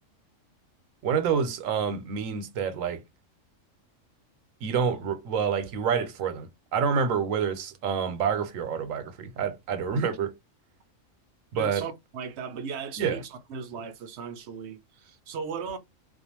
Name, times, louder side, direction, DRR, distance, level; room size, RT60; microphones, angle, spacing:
voice 1, 1.0-3.0 4.6-10.3 11.5-11.8 13.0-13.2, right 6 dB, 90° right, 1.0 m, -28 dB
voice 2, 11.5-15.8, right 6 dB, 65° right, 0.8 m, -37 dB
2.5 x 2.3 x 2.8 m
omnidirectional pair, 1.3 m